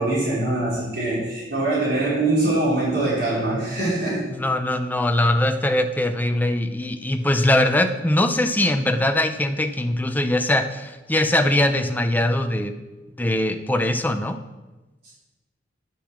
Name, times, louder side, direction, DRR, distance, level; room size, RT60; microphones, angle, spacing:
voice 1, 0.0-4.2, right 2 dB, 60° right, -7 dB, 4.4 m, -23 dB
voice 2, 4.3-12.7 13.2-14.4, left 1 dB, 10° left, 7 dB, 0.6 m, -21 dB
9.8 x 6.9 x 6.2 m, 1.1 s
head